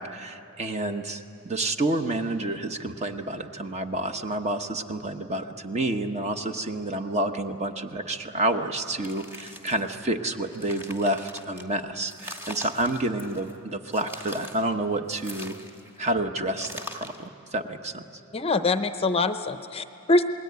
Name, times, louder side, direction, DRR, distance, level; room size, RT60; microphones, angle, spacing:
voice 1, 0.0-15.6 16.0-18.0, right 1 dB, 30° right, 6 dB, 1.1 m, -29 dB
sound 1, 8.9-9.9 10.4-11.6 12.1-13.6 13.9-14.7 15.1-16.0 16.6-17.3, equal, 10° right, 1.4 m, -42 dB
voice 2, 18.3-20.2, left 2 dB, 25° left, 10 dB, 0.7 m, -24 dB
27.5 x 20.5 x 9.5 m, 2.8 s
head